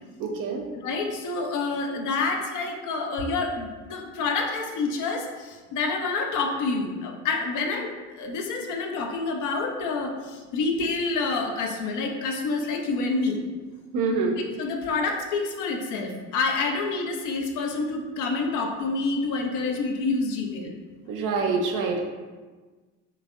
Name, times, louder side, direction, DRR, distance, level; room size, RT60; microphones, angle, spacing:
voice 1, 0.2-0.6 13.9-14.4 21.1-22.0, right 4 dB, 60° right, 2 dB, 0.5 m, -25 dB
voice 2, 0.8-13.4 14.6-20.7, left 3 dB, 55° left, 2 dB, 0.5 m, -28 dB
3.2 x 2.1 x 2.4 m, 1.3 s
hypercardioid pair, 60°, 36 cm